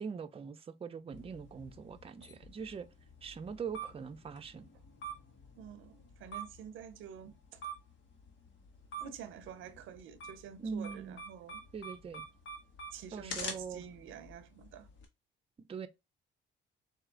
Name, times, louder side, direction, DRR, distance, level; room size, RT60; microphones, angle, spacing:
voice 1, 0.0-2.9 3.2-4.7 10.6-11.2 11.7-12.2 13.1-13.8 15.7-15.9, right 6 dB, 30° right, 0.6 m, -42 dB
sound 1, 1.1-15.0, right 1 dB, 75° left, 1.4 m, -48 dB
voice 2, 5.6-7.6 9.0-11.6 12.9-14.9, right 8 dB, 85° right, 0.6 m, -48 dB
4.4 x 2.8 x 3.7 m
cardioid pair, 90°, 20 cm